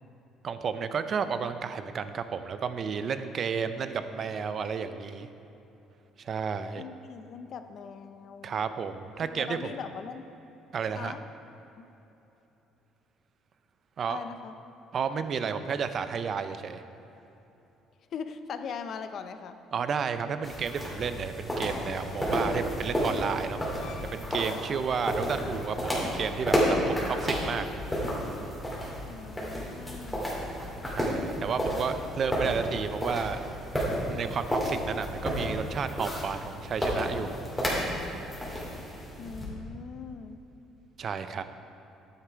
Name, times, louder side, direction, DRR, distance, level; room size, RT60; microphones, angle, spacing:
voice 1, 0.4-5.3 6.2-6.8 8.4-9.7 10.7-11.1 14.0-14.2 14.9-16.8 19.7-23.6 24.1-27.7 30.9-33.4 33.7-37.3 41.0-41.4, right 6 dB, 40° right, 10 dB, 0.5 m, -32 dB
voice 2, 6.8-8.5 9.2-10.3 11.0-11.2 11.8-11.9 14.1-14.5 18.1-19.6 29.1-30.3 39.2-40.4, left 6 dB, 45° left, 9 dB, 0.6 m, -40 dB
sound 1, 20.4-39.4, equal, 5° left, 2.6 m, -32 dB
sound 2, 21.6-22.6 23.6-24.2 25.0-26.4 27.3-27.4, left 3 dB, 80° left, 1.9 m, -50 dB
11.0 x 9.8 x 4.6 m, 3.0 s
cardioid pair, 145°, 0 cm